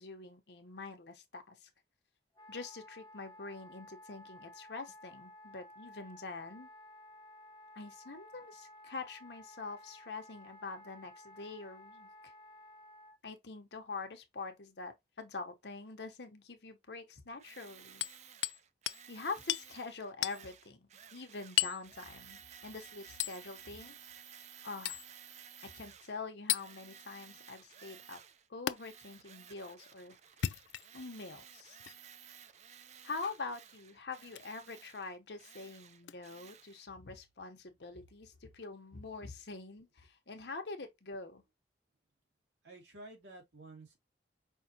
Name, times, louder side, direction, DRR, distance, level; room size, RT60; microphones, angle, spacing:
voice 1, 0.0-1.7 2.5-6.7 7.7-12.3 13.2-18.1 19.1-24.0 24.6-25.0 25.6-28.2 28.5-30.2 30.9-31.8 33.0-41.4, left 3 dB, 65° left, 0.9 m, -45 dB
Wind instrument woodwind instrument, 2.3-13.2, left 1 dB, 25° left, 1.0 m, -55 dB
Tools, 17.4-26.2 26.5-28.5 28.7-36.9, right 8 dB, 40° right, 0.4 m, -55 dB
Hammer, 18.0-18.6 18.9-19.0 19.5-19.7 20.2-20.4 21.6-21.8 23.2-23.4 24.9-25.1 26.5-26.7 28.7-28.8 30.3-31.1 31.8-32.0 33.2-33.4 34.3-34.5 36.0-36.1, left 13 dB, 85° left, 0.3 m, -34 dB
voice 2, 42.6-44.0, right 2 dB, 85° right, 2.2 m, -51 dB
5.5 x 2.7 x 2.8 m
head